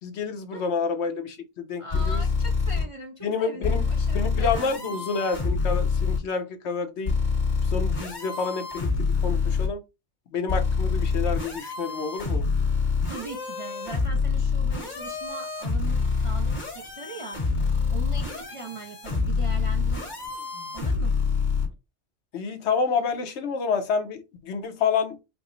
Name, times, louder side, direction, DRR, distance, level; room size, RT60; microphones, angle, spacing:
voice 1, 0.0-2.2 3.2-3.9 4.1-7.2 7.7-9.8 10.3-12.4 22.3-25.2, left 5 dB, 70° left, 1.0 m, -28 dB
voice 2, 1.8-5.0 13.1-20.1 20.7-21.2, right 3 dB, 40° right, 0.4 m, -40 dB
sound 1, 1.9-2.8 3.6-6.2 7.1-9.7 10.5-21.7, left 5 dB, 40° left, 1.6 m, -26 dB
4.7 x 2.0 x 3.8 m
omnidirectional pair, 1.2 m